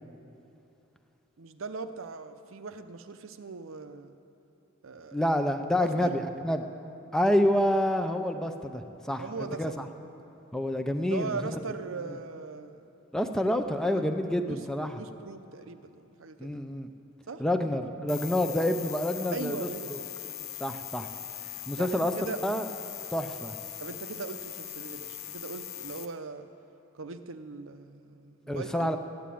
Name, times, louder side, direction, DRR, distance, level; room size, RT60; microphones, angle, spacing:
voice 1, 1.4-4.1 4.8-5.2 5.8-6.1 9.2-9.8 11.1-12.8 13.9-14.1 14.5-14.6 15.0-16.5 17.3-17.4 19.3-19.9 20.4-20.5 21.8-22.4 23.8-26.5 26.9-28.9, right 4 dB, 75° right, 9 dB, 0.7 m, -39 dB
voice 2, 5.1-6.7 7.1-9.8 10.5-11.6 12.1-12.2 13.1-15.0 16.4-16.9 17.4-20.0 20.6-21.1 21.7-22.1 22.4-22.7 23.1-23.5 28.5-29.0, left 1 dB, 5° left, 6 dB, 0.5 m, -28 dB
sound 1, 18.1-26.1, left 12 dB, 80° left, 0.9 m, -40 dB
13.5 x 9.3 x 8.5 m, 2.9 s
head